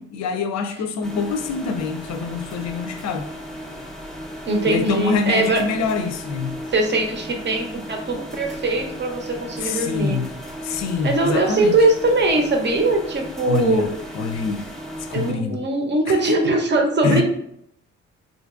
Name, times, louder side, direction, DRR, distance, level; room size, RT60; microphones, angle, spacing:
voice 1, 0.0-3.3 4.6-6.5 9.6-10.3 10.6-11.8 13.5-14.7 15.1-15.6 16.1-16.3 17.0-17.2, left 4 dB, 60° left, 0.5 m, -25 dB
sound 1, 1.0-15.3, equal, ahead, 0.6 m, -35 dB
voice 2, 4.5-5.6 6.7-10.2 11.0-13.9 15.1-17.2, right 2 dB, 35° right, 0.7 m, -21 dB
3.7 x 2.4 x 2.4 m
cardioid pair, 90°, 30 cm